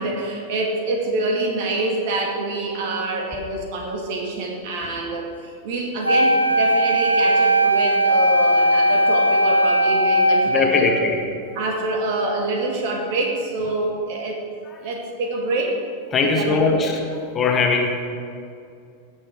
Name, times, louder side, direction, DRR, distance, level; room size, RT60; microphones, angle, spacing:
voice 1, 0.0-11.1 11.6-14.4 14.8-15.8 16.2-16.9, right 2 dB, 50° right, 1 dB, 1.9 m, -26 dB
Wind instrument woodwind instrument, 6.0-11.2, equal, 90° right, 0.4 m, -18 dB
voice 2, 10.5-11.2 14.7-14.9 16.1-17.0 17.3-17.9, left 4 dB, 25° left, 1 dB, 1.3 m, -20 dB
16.0 x 6.2 x 4.8 m, 2.4 s
figure-of-eight pair, 90°, 0 cm